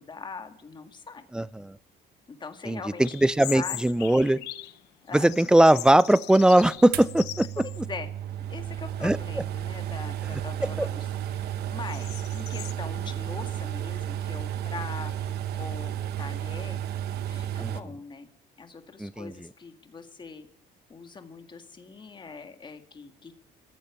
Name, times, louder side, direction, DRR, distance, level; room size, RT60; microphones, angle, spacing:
voice 1, 0.0-1.3 2.4-3.0 3.4-4.2 5.0-5.3 7.6-8.1 8.4-11.1 11.3-15.1 15.5-16.8 17.3-18.3 18.6-20.5 20.9-23.4, left 4 dB, 25° left, 7 dB, 1.9 m, -42 dB
voice 2, 1.3-1.8 2.7-4.4 5.1-7.6 9.0-9.2 10.6-10.9 17.6-17.7 19.0-19.3, right 1 dB, 5° right, 19 dB, 0.5 m, -20 dB
sound 1, 3.0-4.8 5.1-7.9 8.2-8.3 9.1-9.4 9.9-12.7, left 16 dB, 85° left, 0.9 m, -41 dB
sound 2, 6.9-17.8, right 11 dB, 75° right, 1.1 m, -33 dB
15.0 x 7.2 x 10.0 m, 0.64 s
cardioid pair, 110°, 17 cm